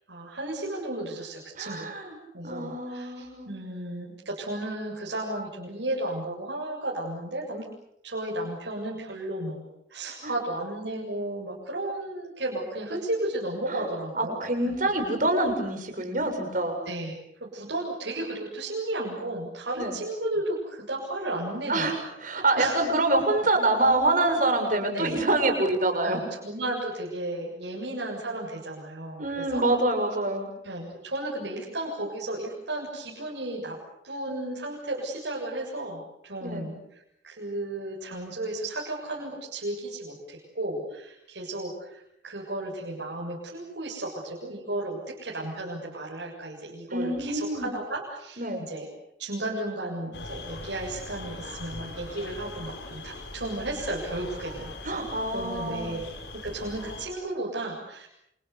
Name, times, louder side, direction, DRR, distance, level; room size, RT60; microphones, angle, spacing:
voice 1, 0.1-7.7 8.0-14.7 16.9-17.1 17.4-22.1 22.6-22.8 24.9-25.1 26.0-29.7 30.6-33.8 34.0-36.8 37.2-48.4 48.7-48.9 49.2-55.1 55.3-56.1 56.4-58.1, right 1 dB, 75° right, -3 dB, 7.3 m, -34 dB
voice 2, 1.6-2.2 2.4-3.5 10.2-10.3 13.7-13.9 14.2-16.8 19.8-19.9 21.7-26.3 29.2-30.5 36.4-36.7 46.9-47.7 48.4-48.6 54.8-55.9, right 2 dB, 45° right, 5 dB, 7.2 m, -26 dB
sound 1, 50.1-57.1, left 2 dB, 70° left, 5.6 m, -41 dB
29.5 x 28.5 x 6.9 m, 0.77 s
head